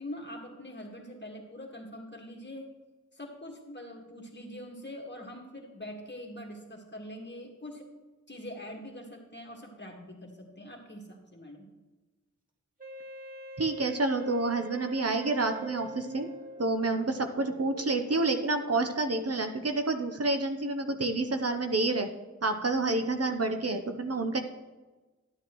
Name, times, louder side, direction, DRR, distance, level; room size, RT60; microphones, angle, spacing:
voice 1, 0.0-2.7 3.1-7.9 8.3-11.7, left 1 dB, 35° left, 1 dB, 1.8 m, -43 dB
Wind instrument woodwind instrument, 12.8-17.1, right 1 dB, 30° right, 2.2 m, -44 dB
voice 2, 13.6-16.3 16.6-22.1 22.4-24.4, right 2 dB, 55° right, 6 dB, 0.7 m, -29 dB
sound 1, 15.6-20.0, right 3 dB, 85° right, 1.0 m, -50 dB
12.0 x 8.8 x 3.0 m, 1.2 s
wide cardioid pair, 45°, 29 cm